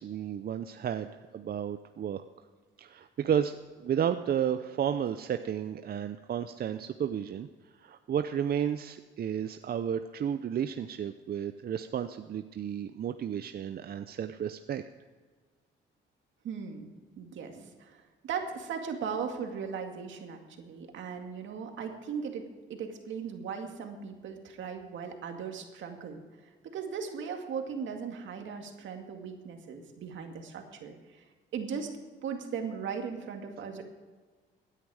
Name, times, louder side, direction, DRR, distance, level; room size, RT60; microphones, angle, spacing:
voice 1, 0.0-2.2 2.8-7.5 7.8-14.8, right 9 dB, 50° right, 9 dB, 0.6 m, -32 dB
voice 2, 16.4-16.9 17.2-26.2 26.6-31.2 31.5-31.9 32.2-33.9, right 6 dB, 75° right, 4 dB, 2.1 m, -38 dB
16.5 x 10.0 x 4.9 m, 1.4 s
cardioid pair, 90°, 20 cm